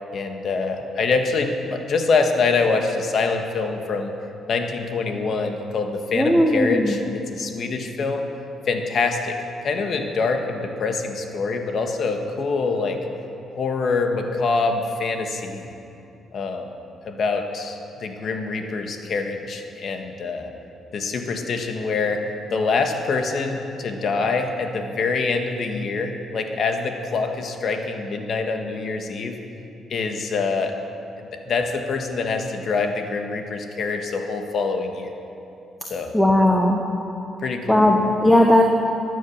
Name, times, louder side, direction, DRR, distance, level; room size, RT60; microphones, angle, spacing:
voice 1, 0.1-4.1 4.5-8.3 8.7-9.4 9.6-13.0 13.5-15.7 16.3-16.7 17.1-20.5 20.9-29.4 29.9-30.9 31.2-35.1 35.9-36.2 37.4-38.1, left 4 dB, 55° left, 5 dB, 1.5 m, -25 dB
voice 2, 6.1-7.0 14.4-14.5 36.1-36.8 37.7-38.6, left 1 dB, 5° left, 1 dB, 1.1 m, -17 dB
14.0 x 10.0 x 7.3 m, 2.8 s
cardioid pair, 90°, 0 cm